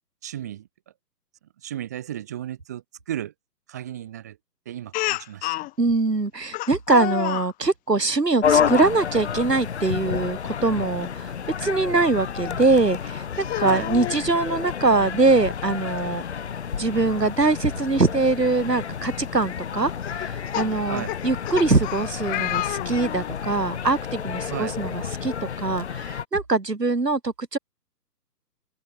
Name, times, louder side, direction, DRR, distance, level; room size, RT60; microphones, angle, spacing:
voice 1, 0.2-0.7 1.6-3.3 3.7-4.4 4.7-5.7 13.6-13.9 20.9-21.1 24.5-24.8, right 11 dB, 10° right, 0.8 m, -34 dB
Speech, 4.9-5.7 6.5-7.5 8.4-8.8 10.0-10.3 10.7-10.8 12.5-12.6 13.4-14.2 15.6-15.7 16.0-16.1 18.0-18.1 18.7-18.9 20.0-23.4, left 19 dB, 15° left, 5.1 m, -30 dB
voice 2, 5.8-11.3 11.6-16.2 16.7-27.6, right 3 dB, 70° right, 6.0 m, -23 dB
sound 1, 8.4-26.3, left 7 dB, 40° left, 1.1 m, -30 dB
open air
figure-of-eight pair, 135°, 49 cm